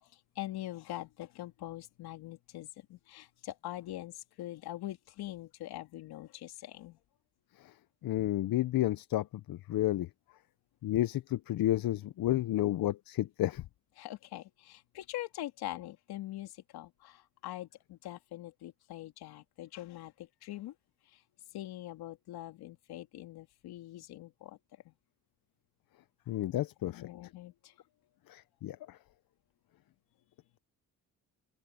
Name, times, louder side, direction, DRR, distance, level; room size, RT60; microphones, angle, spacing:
voice 1, 0.0-7.0 14.0-20.7 21.1-21.2 21.5-24.6 24.8-24.9 26.8-27.7, left 15 dB, 85° left, 3.1 m, -43 dB
voice 2, 8.0-10.1 10.8-13.6 26.3-27.1 28.3-29.0, left 14 dB, 65° left, 0.8 m, -31 dB
open air
cardioid pair, 75°, 37 cm